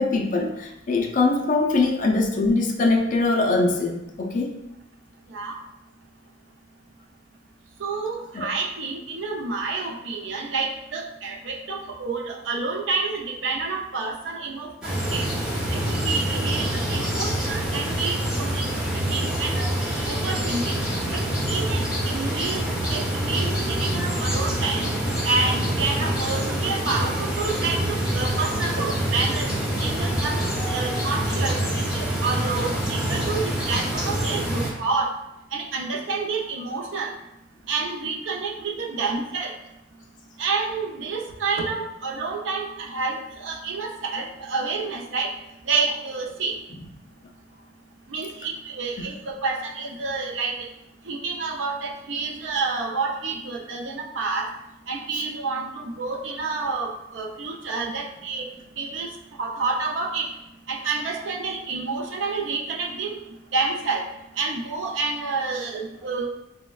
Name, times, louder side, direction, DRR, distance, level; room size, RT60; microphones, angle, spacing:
voice 1, 0.0-4.5 8.3-8.5 30.6-31.1, left 3 dB, 45° left, 2 dB, 0.4 m, -23 dB
voice 2, 7.8-15.3 15.7-18.6 18.9-19.7 20.1-20.8 21.1-24.9 25.2-30.4 30.7-35.1 35.5-37.1 37.7-39.5 40.4-45.3 45.6-46.6 48.1-50.6 51.1-54.5 54.9-58.5 58.8-59.1 59.4-60.3 60.7-63.2 63.5-64.1 64.4-66.3, right 4 dB, 70° right, 0 dB, 0.5 m, -29 dB
sound 1, 14.8-34.7, right 1 dB, 5° right, 0.6 m, -26 dB
4.1 x 2.1 x 2.3 m, 0.85 s
head